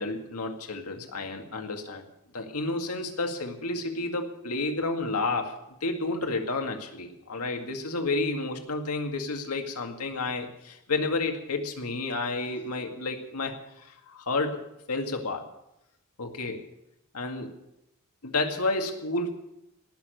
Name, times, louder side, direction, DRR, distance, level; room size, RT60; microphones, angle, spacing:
voice 1, 0.0-2.0 2.3-14.6 14.9-15.4 16.2-16.6 17.1-17.5 18.2-19.3, left 3 dB, 85° left, 4 dB, 2.1 m, -31 dB
18.5 x 6.9 x 9.2 m, 0.87 s
head